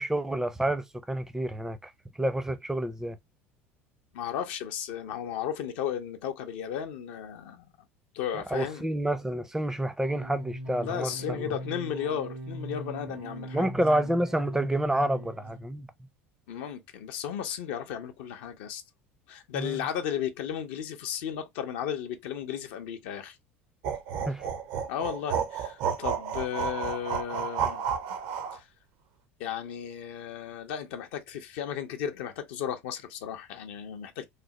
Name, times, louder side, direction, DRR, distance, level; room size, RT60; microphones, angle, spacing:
voice 1, 0.0-1.9 2.2-3.2 8.5-11.4 13.5-15.9 19.5-19.8 24.3-24.4, right 1 dB, 5° right, 0.5 m, -29 dB
voice 2, 4.1-7.7 8.1-8.9 10.8-13.7 16.5-18.8 19.3-23.4 24.9-27.8 28.5-28.7 29.4-34.2, left 9 dB, 65° left, 0.5 m, -34 dB
sound 1, 10.0-15.7, right 1 dB, 80° right, 1.7 m, -40 dB
sound 2, 23.8-28.6, right 7 dB, 60° right, 0.6 m, -31 dB
3.2 x 2.0 x 2.8 m
hypercardioid pair, 70°, 7 cm